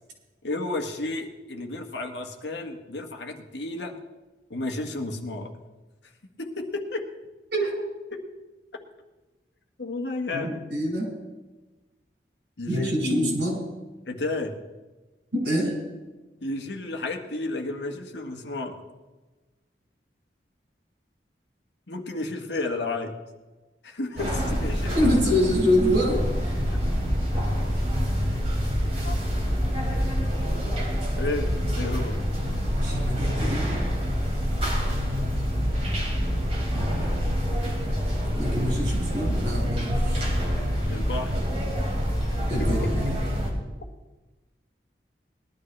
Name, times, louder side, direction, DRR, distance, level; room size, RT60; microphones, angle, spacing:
voice 1, 0.4-3.9 4.5-5.5 6.4-7.0 8.1-8.2 9.8-10.6 12.6-13.4 14.1-14.6 16.4-18.8 21.9-23.1 23.8-25.5 29.0-29.1 31.2-32.2 40.9-41.4 42.6-42.7, left 2 dB, 80° left, 3 dB, 1.6 m, -32 dB
voice 2, 10.3-11.1 12.7-13.6 15.3-15.8 24.9-26.2 32.8-33.8 38.4-40.3 42.5-43.2, equal, 75° right, -2 dB, 6.0 m, -25 dB
sound 1, 24.2-43.5, equal, 35° right, 3.7 m, -26 dB
20.5 x 12.5 x 3.3 m, 1.2 s
head